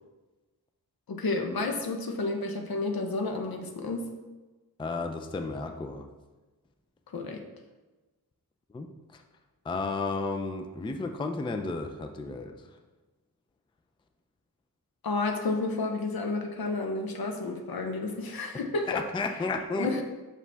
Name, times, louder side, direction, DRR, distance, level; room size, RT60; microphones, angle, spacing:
voice 1, 1.1-4.1 7.1-7.4 15.0-18.9 19.7-20.0, left 3 dB, 65° left, 4 dB, 0.8 m, -31 dB
voice 2, 4.8-6.1 8.7-9.2 9.7-12.5 18.9-19.9, left 3 dB, 15° left, 5 dB, 0.4 m, -33 dB
5.8 x 4.9 x 3.4 m, 1.2 s
wide cardioid pair, 110°, 38 cm